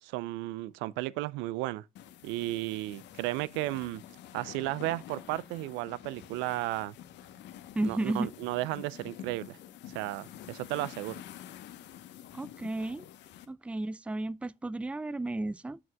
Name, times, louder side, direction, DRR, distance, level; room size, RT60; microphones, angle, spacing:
voice 1, 0.0-1.8 2.2-4.0 4.3-7.0 7.8-9.6 9.9-11.2, right 18 dB, 80° right, 0.4 m, -34 dB
sound 1, 2.0-13.5, left 11 dB, 70° left, 0.9 m, -48 dB
voice 2, 7.7-8.3 12.3-13.0 13.5-15.8, right 2 dB, 5° right, 0.4 m, -33 dB
12.5 x 4.6 x 2.2 m
hypercardioid pair, 55°, 19 cm